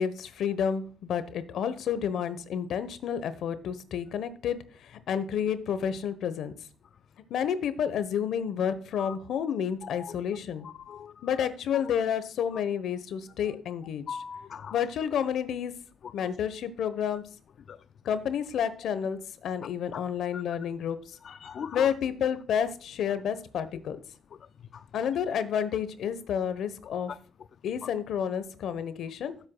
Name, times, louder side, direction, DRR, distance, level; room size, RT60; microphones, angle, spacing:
voice 1, 0.0-6.5 7.3-10.7 11.2-14.2 14.7-15.7 16.1-17.2 18.0-21.2 21.7-24.0 24.9-27.1 27.6-29.3, left 8 dB, 75° left, 1.1 m, -30 dB
voice 2, 9.8-10.1 10.6-11.3 14.1-14.8 16.2-16.3 17.7-17.8 19.9-20.0 20.3-20.4 21.2-21.9 24.7-24.8, left 7 dB, 55° left, 0.4 m, -40 dB
16.5 x 8.0 x 2.3 m
cardioid pair, 90°, 0 cm